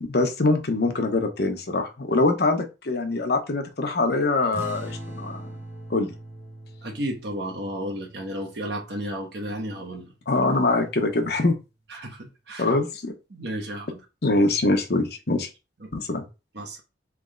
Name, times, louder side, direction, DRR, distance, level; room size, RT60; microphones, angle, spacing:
voice 1, 0.0-5.5 5.9-6.1 10.3-11.6 12.6-13.1 14.2-15.5 15.9-16.2, left 2 dB, 60° left, 0.8 m, -23 dB
sound 1, 4.5-9.5, right 1 dB, 10° right, 0.9 m, -41 dB
voice 2, 6.8-10.1 11.9-12.7 13.3-14.0 15.8-15.9 16.5-16.8, right 1 dB, 65° right, 1.1 m, -33 dB
3.4 x 3.2 x 3.7 m
head